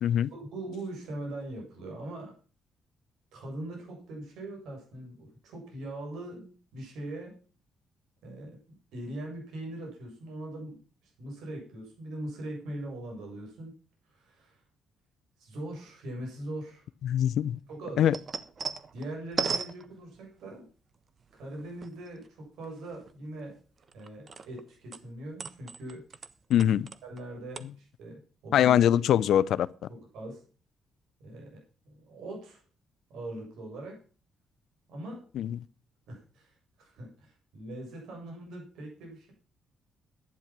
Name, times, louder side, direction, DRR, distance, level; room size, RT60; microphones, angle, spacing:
voice 1, 0.3-2.3 3.3-7.3 8.2-8.6 8.9-10.8 11.2-13.7 14.1-14.6 15.4-16.9 17.7-18.1 18.9-20.7 21.3-23.6 23.9-26.0 26.5-26.6 27.0-28.8 29.9-30.4 31.2-31.6 31.9-32.6 33.1-34.0 34.9-35.3 36.1-36.5 36.8-39.3, right 1 dB, 85° right, 7.5 m, -41 dB
voice 2, 17.0-17.6 18.0-18.1 26.5-26.9 28.5-29.7 35.4-35.6, left 10 dB, 75° left, 0.6 m, -23 dB
sound 1, 17.6-20.5 21.2-22.3 22.6-24.6 24.9-27.2 27.5-27.6, right 5 dB, 45° right, 1.2 m, -37 dB
12.0 x 10.0 x 6.0 m
cardioid pair, 90°, 0 cm